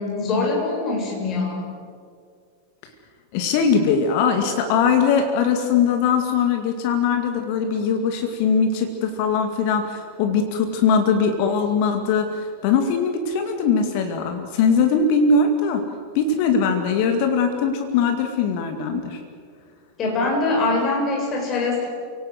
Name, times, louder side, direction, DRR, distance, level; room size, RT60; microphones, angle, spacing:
voice 1, 0.0-1.7 20.0-21.9, left 3 dB, 30° left, 0 dB, 7.8 m, -23 dB
voice 2, 3.3-15.8 16.1-19.2, left 5 dB, 45° left, 6 dB, 2.3 m, -21 dB
29.5 x 18.0 x 7.9 m, 2.1 s
figure-of-eight pair, 90°, 0 cm